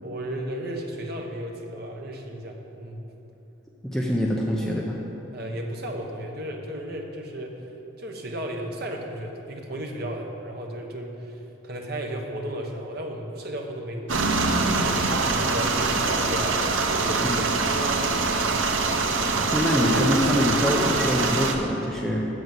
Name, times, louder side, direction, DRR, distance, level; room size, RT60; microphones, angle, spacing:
voice 1, 0.0-3.0 5.3-7.5 8.0-15.0 15.3-16.6 16.9-18.0 18.4-18.5, right 1 dB, 50° right, 2 dB, 1.2 m, -34 dB
voice 2, 3.8-5.0 17.2-17.5 19.5-22.3, equal, ahead, -3 dB, 0.7 m, -25 dB
sound 1, 14.1-21.5, right 3 dB, 75° right, 0.9 m, -24 dB
8.1 x 7.7 x 7.7 m, 3.0 s
head